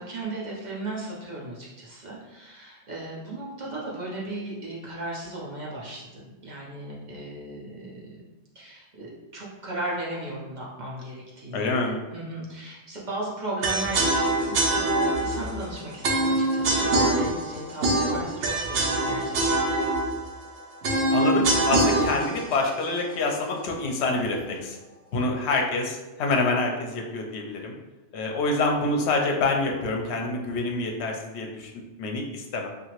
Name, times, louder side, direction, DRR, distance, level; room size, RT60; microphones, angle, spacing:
voice 1, 0.0-8.2 8.5-11.7 12.1-19.6, right 2 dB, 45° right, -5 dB, 0.7 m, -36 dB
voice 2, 11.5-12.0 21.1-24.8 25.1-27.7 28.1-32.7, left 3 dB, 70° left, 1 dB, 0.8 m, -27 dB
sound 1, 13.6-23.7, right 2 dB, 85° right, 0.9 m, -24 dB
2.8 x 2.5 x 2.9 m, 1.1 s
omnidirectional pair, 1.2 m